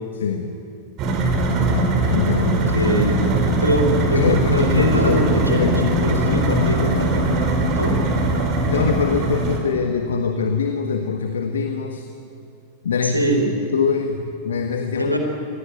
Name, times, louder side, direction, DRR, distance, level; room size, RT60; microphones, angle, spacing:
voice 1, 0.2-0.6 2.1-2.5 4.1-7.3 8.7-12.1 12.8-13.2 13.7-15.1, left 6 dB, 65° left, 5 dB, 1.6 m, -24 dB
sound 1, 1.0-9.6, right 2 dB, 35° right, 4.5 m, -20 dB
voice 2, 2.4-3.2 3.6-7.3 7.7-8.1 13.0-13.5 15.0-15.2, equal, 90° right, 3 dB, 4.2 m, -23 dB
24.0 x 18.5 x 9.8 m, 2.4 s
figure-of-eight pair, 90°, 0 cm